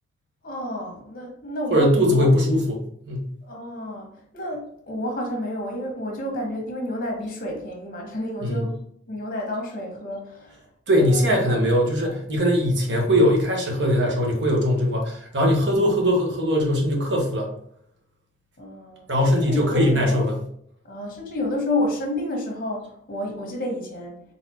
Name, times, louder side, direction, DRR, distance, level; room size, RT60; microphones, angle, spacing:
voice 1, 0.4-2.3 3.4-8.8 9.1-10.6 11.0-11.6 12.0-12.2 18.6-20.2 20.8-24.2, left 1 dB, 55° left, 1 dB, 1.2 m, -30 dB
voice 2, 1.7-3.2 8.4-8.6 10.9-17.5 19.1-20.4, equal, 80° right, 1 dB, 1.2 m, -20 dB
4.1 x 3.5 x 2.8 m, 0.66 s
head